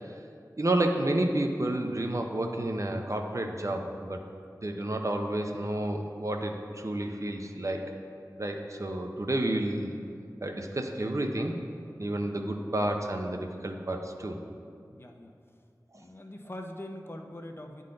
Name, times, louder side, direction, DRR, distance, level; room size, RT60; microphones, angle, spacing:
voice 1, 0.6-4.2 4.6-7.9 8.4-10.0 10.4-11.6 12.0-14.4, right 1 dB, 45° right, 3 dB, 0.6 m, -30 dB
voice 2, 14.9-15.3 15.9-17.8, left 1 dB, 35° left, 3 dB, 0.6 m, -43 dB
8.9 x 3.8 x 3.8 m, 2.3 s
wide cardioid pair, 40°, 7 cm